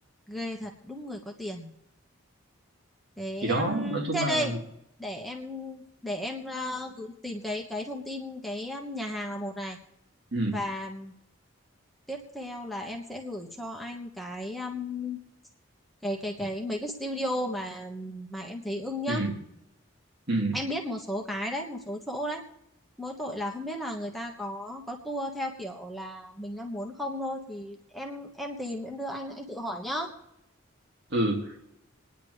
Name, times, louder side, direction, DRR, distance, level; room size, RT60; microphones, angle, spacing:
voice 1, 0.3-1.7 3.2-4.5 5.0-9.8 10.5-11.1 12.1-15.2 16.0-19.2 20.5-22.4 23.0-30.1, left 1 dB, ahead, 0 dB, 1.4 m, -34 dB
voice 2, 3.4-4.6 10.3-10.6 19.1-19.4 20.3-20.6 31.1-31.6, right 1 dB, 55° right, 1 dB, 2.4 m, -28 dB
27.0 x 10.0 x 3.3 m, 0.83 s
head